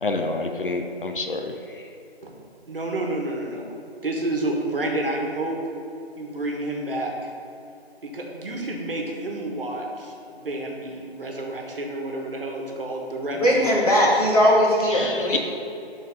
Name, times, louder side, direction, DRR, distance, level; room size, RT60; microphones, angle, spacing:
voice 1, 0.0-1.5 14.9-15.4, left 3 dB, 55° left, 4 dB, 0.6 m, -28 dB
voice 2, 2.7-3.7 4.0-5.6 6.2-7.3 8.0-13.7, right 1 dB, 60° right, 0 dB, 1.2 m, -29 dB
voice 3, 13.4-15.4, equal, 35° left, -5 dB, 1.5 m, -19 dB
7.6 x 3.9 x 5.2 m, 2.7 s
hypercardioid pair, 175°, 32 cm